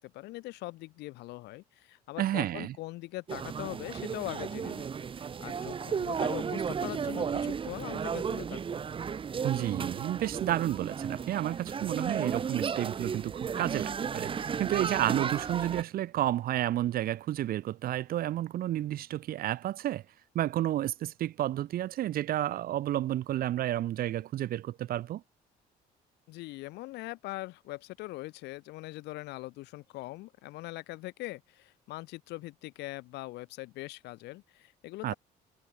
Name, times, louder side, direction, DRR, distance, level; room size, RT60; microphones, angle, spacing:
voice 1, 0.0-4.9 5.2-8.8 26.3-35.1, left 19 dB, 85° left, 1.9 m, -41 dB
voice 2, 2.2-2.8 9.4-20.0 20.3-25.2 35.0-35.1, right 13 dB, 60° right, 0.9 m, -31 dB
sound 1, 3.3-15.8, right 6 dB, 30° right, 0.9 m, -34 dB
cardioid pair, 110°, 17 cm